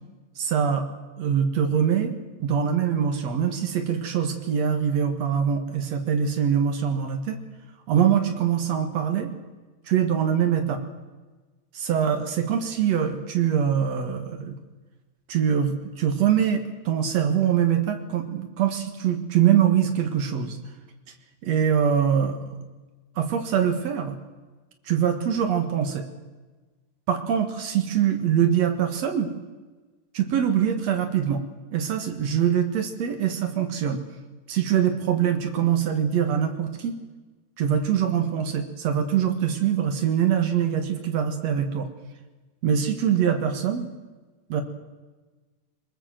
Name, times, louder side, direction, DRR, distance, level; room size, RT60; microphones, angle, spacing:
voice 1, 0.4-0.9 1.2-2.1 2.4-7.4 7.9-9.3 9.9-10.8 11.7-14.5 15.3-20.6 21.4-22.6 23.1-24.2 24.8-26.0 27.1-29.3 30.1-31.4 31.7-34.0 34.5-37.0 37.6-41.9 42.6-43.9 44.5-44.6, right 8 dB, 65° right, 6 dB, 1.7 m, -23 dB
22.5 x 21.0 x 7.6 m, 1.3 s
omnidirectional pair, 5.4 m